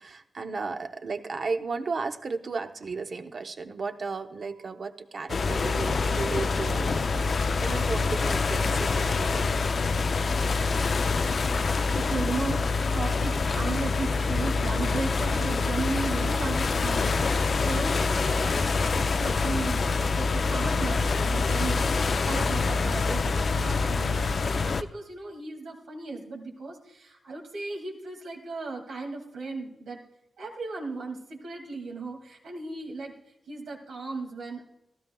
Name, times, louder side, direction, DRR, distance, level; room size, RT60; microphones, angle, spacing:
voice 1, 0.0-9.6, right 4 dB, 60° right, 7 dB, 0.8 m, -34 dB
sound 1, 5.3-24.8, left 4 dB, 55° left, 0.4 m, -26 dB
voice 2, 11.7-18.7 18.9-30.0 30.4-34.6, right 3 dB, 90° right, -1 dB, 2.3 m, -36 dB
sound 2, 13.8-24.6, left 1 dB, 20° left, 0.7 m, -45 dB
16.0 x 12.5 x 2.3 m, 0.83 s
cardioid pair, 65°, 0 cm